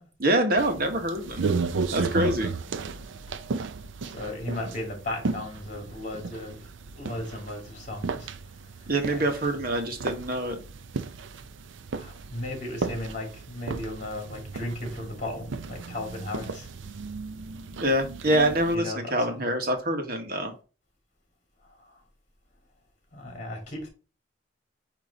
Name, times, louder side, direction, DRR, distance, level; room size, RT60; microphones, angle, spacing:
voice 1, 0.2-1.4 1.9-2.5 8.9-10.6 17.8-20.5, right 1 dB, 50° right, 5 dB, 1.4 m, -25 dB
sound 1, 0.6-18.8, right 4 dB, 80° right, 0.5 m, -34 dB
voice 2, 4.1-6.6 7.0-8.3 8.6-9.2 11.9-16.7 18.7-19.4 20.3-20.5 21.7-22.0 23.1-23.9, left 1 dB, 40° left, 1 dB, 2.6 m, -36 dB
8.6 x 3.0 x 4.1 m, 0.34 s
head